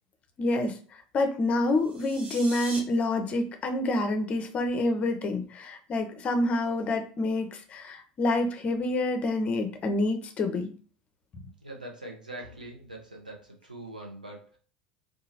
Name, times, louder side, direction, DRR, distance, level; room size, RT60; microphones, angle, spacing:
voice 1, 0.4-0.8 1.1-10.7, left 2 dB, 30° left, 7 dB, 0.5 m, -27 dB
sound 1, 1.7-2.8, right 3 dB, 30° right, 0.7 m, -40 dB
voice 2, 11.6-14.6, right 1 dB, 85° right, 0 dB, 0.7 m, -43 dB
2.8 x 2.3 x 2.8 m, 0.40 s
figure-of-eight pair, 75°, 4 cm